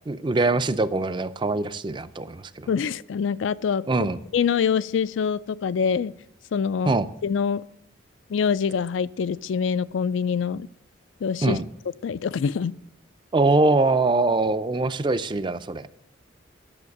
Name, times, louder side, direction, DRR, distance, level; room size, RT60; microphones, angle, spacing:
voice 1, 0.1-2.7 3.9-4.2 6.9-7.1 11.4-11.6 13.3-15.9, right 3 dB, 25° right, 13 dB, 0.4 m, -23 dB
voice 2, 2.7-3.8 4.3-6.1 6.5-6.9 7.2-7.6 8.3-10.7 11.2-11.6 12.0-12.7, left 6 dB, 75° left, 17 dB, 0.4 m, -25 dB
11.0 x 7.1 x 6.5 m, 0.72 s
head